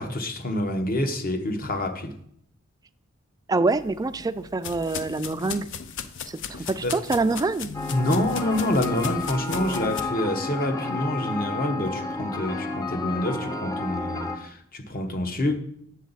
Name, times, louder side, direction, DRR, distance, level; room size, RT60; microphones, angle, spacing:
voice 1, 0.0-2.2 6.5-7.0 7.9-15.6, left 1 dB, 45° left, 6 dB, 1.1 m, -27 dB
voice 2, 3.5-5.7 6.3-7.7, right 3 dB, 15° right, 12 dB, 0.3 m, -25 dB
sound 1, 3.7-10.0, left 7 dB, 60° left, 0.5 m, -37 dB
sound 2, 7.7-14.4, left 3 dB, 15° left, 0.7 m, -31 dB
8.3 x 7.0 x 4.1 m, 0.71 s
head